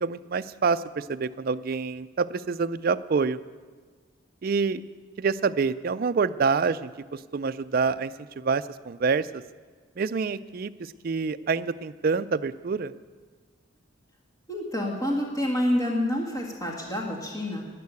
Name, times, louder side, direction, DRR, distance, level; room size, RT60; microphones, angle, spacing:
voice 1, 0.0-3.4 4.4-4.8 5.2-9.4 10.0-10.7 11.0-12.9, right 5 dB, 45° right, 13 dB, 0.4 m, -27 dB
voice 2, 14.5-17.6, left 1 dB, 15° left, -1 dB, 1.7 m, -28 dB
11.0 x 10.5 x 8.3 m, 1.5 s
head